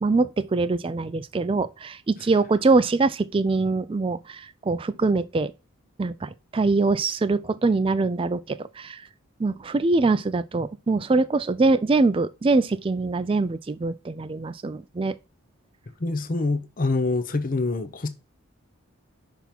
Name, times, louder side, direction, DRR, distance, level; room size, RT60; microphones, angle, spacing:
voice 1, 0.0-5.5 6.0-9.0 9.4-15.2, right 3 dB, 25° right, 0.3 m, -23 dB
voice 2, 16.0-18.1, left 3 dB, 40° left, 0.6 m, -25 dB
6.0 x 3.5 x 5.8 m
head